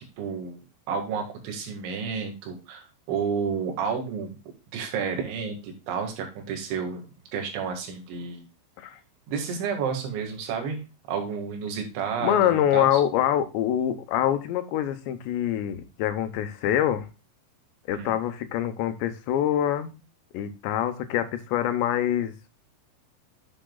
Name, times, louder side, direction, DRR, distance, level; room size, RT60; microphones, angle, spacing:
voice 1, 0.2-4.4 4.7-7.1 7.3-8.5 9.3-10.8 11.1-13.0 17.9-18.2, right 6 dB, 85° right, 4 dB, 4.1 m, -31 dB
voice 2, 12.2-17.1 17.9-19.9 20.3-22.3, left 11 dB, 80° left, 9 dB, 3.0 m, -25 dB
10.0 x 7.2 x 2.3 m, 0.29 s
omnidirectional pair, 5.2 m